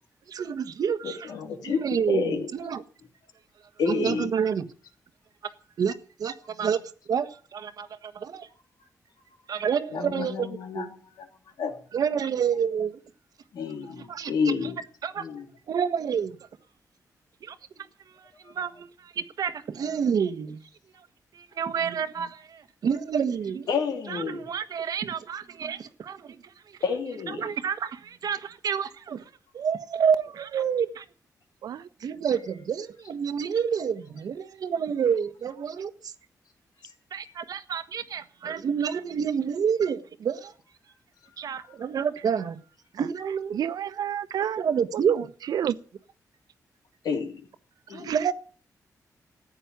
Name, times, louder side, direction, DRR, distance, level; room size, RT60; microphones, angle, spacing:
voice 1, 0.3-1.3 1.6-2.8 3.9-4.6 5.8-5.9 6.2-6.8 7.1-8.5 9.5-10.5 10.7-10.9 11.9-13.0 14.1-14.3 15.0-15.2 15.7-16.4 17.4-17.6 18.2-20.6 20.9-21.1 21.3-23.7 24.1-26.5 27.3-29.2 29.5-31.0 32.0-36.1 37.1-40.5 41.4-42.6 42.9-43.6 44.6-45.3 47.9-48.3, right 7 dB, 70° right, 1.4 m, -28 dB
voice 2, 1.0-2.5 3.8-4.3 9.9-11.3 11.6-11.7 13.5-14.8 15.2-15.5 23.7-24.5 26.8-27.5 37.2-37.3 41.5-41.6 47.0-47.5 47.9-48.1, left 5 dB, 85° left, 3.1 m, -30 dB
voice 3, 43.5-44.6 44.9-45.0 45.5-45.8 48.0-48.2, right 10 dB, 85° right, 0.8 m, -29 dB
14.5 x 9.1 x 9.5 m
cardioid pair, 110°, 7 cm